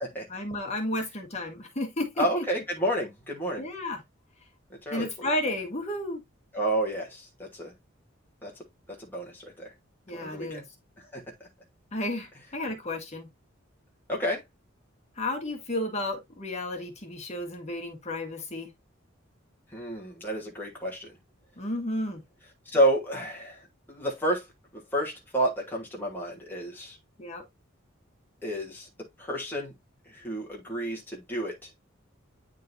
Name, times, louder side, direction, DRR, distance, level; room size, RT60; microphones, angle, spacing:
voice 1, 0.3-2.4 3.6-4.0 4.9-6.2 10.1-10.6 11.9-13.3 15.2-18.7 21.6-22.2 27.2-27.4, left 1 dB, 35° left, 1.5 m, -32 dB
voice 2, 2.2-3.6 4.8-5.3 6.5-7.7 8.4-8.6 9.0-9.7 10.1-10.6 11.1-11.2 14.1-14.4 19.7-21.1 22.6-24.5 24.7-27.0 28.4-28.9 29.2-29.7 30.1-31.7, right 1 dB, 10° left, 1.2 m, -30 dB
9.4 x 3.8 x 2.6 m
head